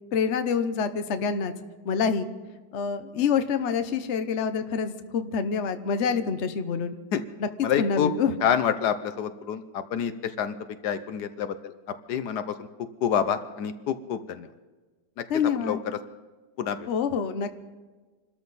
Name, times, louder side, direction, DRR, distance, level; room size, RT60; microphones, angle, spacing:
voice 1, 0.1-1.5 1.8-2.3 2.7-7.0 7.4-8.4 15.3-15.8 16.9-17.6, left 6 dB, 50° left, 9 dB, 1.1 m, -26 dB
voice 2, 7.6-8.1 8.4-9.6 9.9-10.1 10.4-10.5 10.8-11.7 12.1-12.4 13.0-14.5 15.6-15.8 16.6-16.8, left 8 dB, 75° left, 11 dB, 1.3 m, -27 dB
26.0 x 13.5 x 4.1 m, 1.3 s
omnidirectional pair, 1.8 m